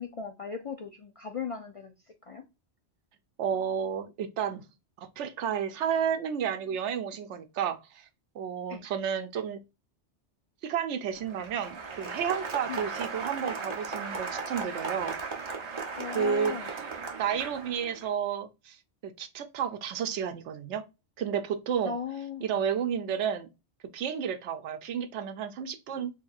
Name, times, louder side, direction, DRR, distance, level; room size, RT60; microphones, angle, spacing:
voice 1, 0.0-1.9 2.2-2.4 8.7-8.8 12.7-12.8 15.9-16.7 21.8-22.5, left 6 dB, 60° left, 0.3 m, -37 dB
voice 2, 3.4-4.6 5.0-8.1 8.3-9.6 10.6-15.2 16.1-16.7 17.2-18.8 19.0-20.8 21.2-22.0 22.4-23.5 23.9-26.1, right 8 dB, 90° right, 0.9 m, -31 dB
Applause, 11.1-18.1, right 4 dB, 30° right, 0.6 m, -36 dB
4.3 x 3.2 x 2.4 m
omnidirectional pair, 1.2 m